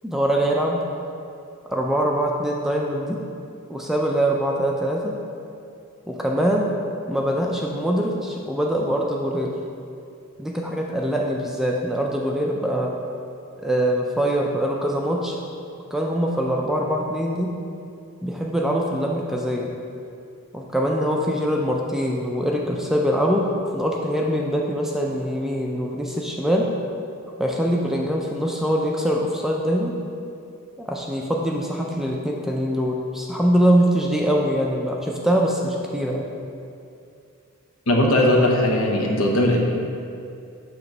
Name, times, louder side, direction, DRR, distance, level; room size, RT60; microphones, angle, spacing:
voice 1, 0.0-0.8 1.7-3.2 3.7-5.2 6.1-6.7 7.1-9.5 10.4-12.9 13.6-15.4 15.9-17.6 18.2-19.7 20.5-26.7 27.4-30.0 30.8-36.3, equal, ahead, -1 dB, 0.4 m, -23 dB
voice 2, 37.9-39.6, left 1 dB, 70° left, 0 dB, 0.9 m, -18 dB
7.9 x 3.1 x 6.0 m, 2.5 s
head